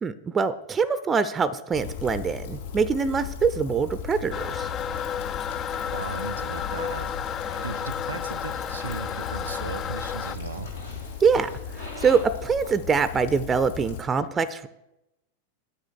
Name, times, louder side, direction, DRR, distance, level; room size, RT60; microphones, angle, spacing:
voice 1, 0.0-4.7 11.2-11.5 11.8-14.7, right 5 dB, 20° right, 15 dB, 0.6 m, -24 dB
Rain, 1.7-14.0, left 7 dB, 60° left, 4.7 m, -37 dB
Toilet flush, 4.3-10.4, left 8 dB, 30° left, 0.4 m, -32 dB
sound 1, 5.7-12.8, equal, 85° left, 2.4 m, -45 dB
voice 2, 5.9-7.1 7.6-10.7, right 5 dB, 75° right, 15 dB, 0.9 m, -36 dB
9.7 x 8.5 x 6.4 m, 0.90 s
figure-of-eight pair, 90°, 0 cm